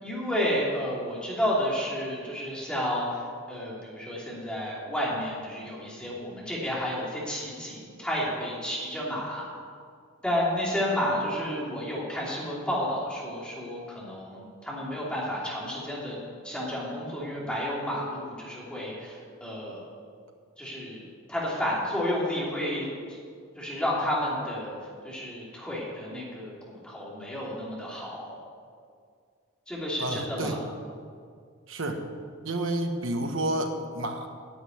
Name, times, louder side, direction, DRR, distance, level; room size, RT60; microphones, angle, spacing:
voice 1, 0.0-3.2 3.5-9.5 10.2-19.8 20.6-22.9 23.6-24.7 25.0-28.4 29.7-30.6, equal, 5° left, -6 dB, 3.1 m, -31 dB
voice 2, 30.0-30.6 31.7-32.0 32.4-34.3, right 1 dB, 70° right, 4 dB, 1.4 m, -30 dB
10.5 x 7.7 x 9.4 m, 2.1 s
head